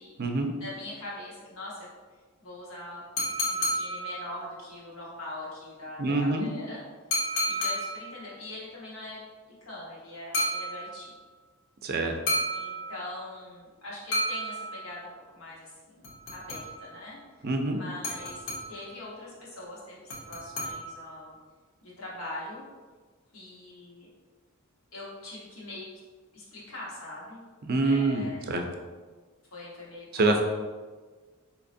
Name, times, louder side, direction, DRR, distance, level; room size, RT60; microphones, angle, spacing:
voice 1, 0.6-1.9 2.4-3.0 3.4-6.8 7.5-9.2 9.6-11.1 12.5-17.2 17.7-21.4 21.8-22.6 23.3-24.1 24.9-25.9 26.3-27.4 27.8-28.6 29.5-30.4, left 2 dB, 85° left, -6 dB, 1.2 m, -42 dB
sound 1, 3.2-4.6 7.1-8.3 10.3-11.2 12.3-13.3 14.1-15.1 16.0-17.0 18.0-19.0 20.1-21.2, equal, 65° left, 0.9 m, -32 dB
voice 2, 6.0-6.5 11.8-12.2 17.4-17.8 27.6-28.6 30.1-30.4, right 2 dB, 45° right, 4 dB, 0.4 m, -26 dB
4.1 x 2.9 x 2.6 m, 1.4 s
head